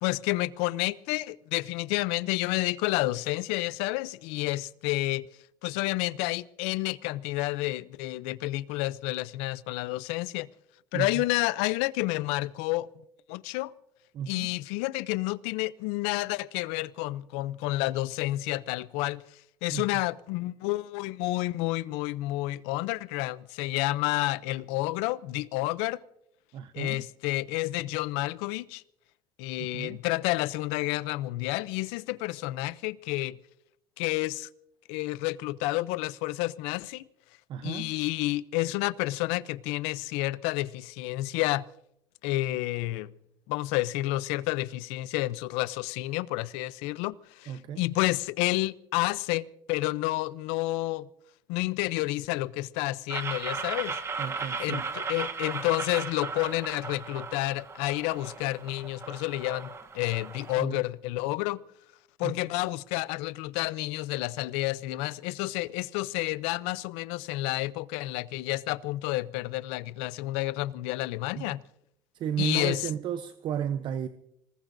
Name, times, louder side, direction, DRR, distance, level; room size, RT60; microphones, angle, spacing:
voice 1, 0.0-5.3 5.6-10.5 10.9-12.9 13.3-13.7 14.3-19.2 19.6-26.0 26.7-28.8 29.4-33.4 34.0-34.5 34.9-37.0 37.6-41.6 42.2-43.1 43.5-51.1 51.5-54.0 54.4-61.6 62.2-71.6 72.4-72.9, left 18 dB, 90° left, 0.5 m, -30 dB
voice 2, 10.9-11.2 14.1-14.5 19.7-19.8 26.5-27.0 29.6-30.0 37.5-37.9 47.5-47.8 54.2-54.9 60.6-60.8 62.2-62.3 71.4-71.5 72.2-74.1, right 9 dB, 50° right, 0.7 m, -33 dB
sound 1, 53.1-60.6, right 4 dB, 30° right, 1.0 m, -36 dB
26.5 x 19.0 x 2.6 m
cardioid pair, 120°, 10 cm